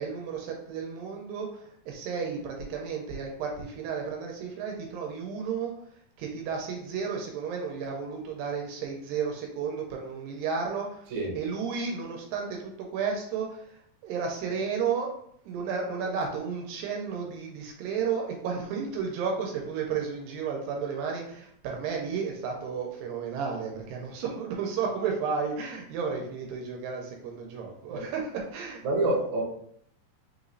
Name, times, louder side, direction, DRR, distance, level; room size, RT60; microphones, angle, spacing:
voice 1, 0.0-15.1 15.5-28.8, right 6 dB, 85° right, 0 dB, 2.3 m, -33 dB
voice 2, 28.8-29.4, right 2 dB, 65° right, -1 dB, 2.2 m, -27 dB
5.3 x 3.0 x 2.6 m, 0.68 s
omnidirectional pair, 4.1 m